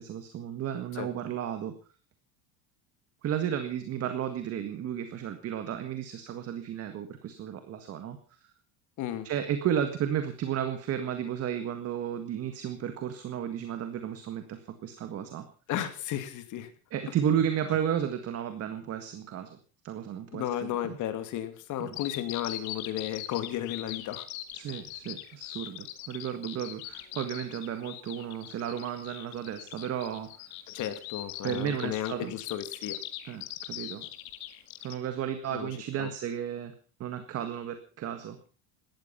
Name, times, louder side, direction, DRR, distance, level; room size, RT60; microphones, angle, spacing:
voice 1, 0.0-1.7 3.2-8.5 9.2-15.5 16.9-19.6 19.8-21.0 21.8-22.0 24.5-30.6 31.4-32.3 33.2-34.1 34.8-36.7 37.0-38.4, right 9 dB, 35° right, 8 dB, 1.8 m, -33 dB
voice 2, 15.7-16.7 20.3-24.3 30.7-33.0 35.5-36.1, left 11 dB, 45° left, 9 dB, 2.6 m, -34 dB
Bird vocalization bird call bird song, 21.9-35.0, left 15 dB, 75° left, 2.1 m, -41 dB
17.5 x 13.5 x 5.7 m, 0.38 s
cardioid pair, 155°, 43 cm